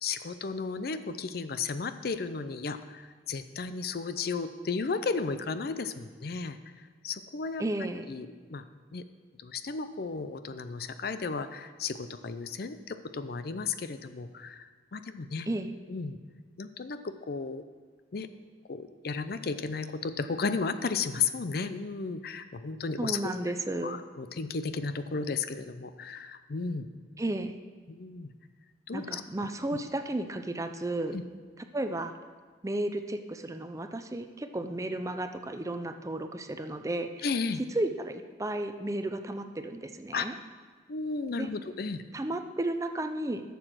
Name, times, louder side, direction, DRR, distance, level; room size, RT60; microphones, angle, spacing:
voice 1, 0.0-6.6 7.0-7.6 8.1-8.6 8.9-9.0 9.4-15.5 15.9-16.2 16.6-17.6 18.1-18.3 18.7-23.5 23.8-26.9 27.9-28.3 28.9-29.2 29.7-29.8 31.1-31.2 37.2-37.6 40.1-40.3 40.9-42.0, left 4 dB, 60° left, 11 dB, 0.5 m, -34 dB
voice 2, 7.6-8.1 15.5-15.7 23.0-24.0 27.2-27.5 28.9-31.2 31.7-32.1 32.6-37.2 37.7-40.3 41.4-41.5 42.1-43.4, right 1 dB, 20° right, 8 dB, 0.5 m, -33 dB
11.5 x 7.0 x 6.1 m, 1.5 s
head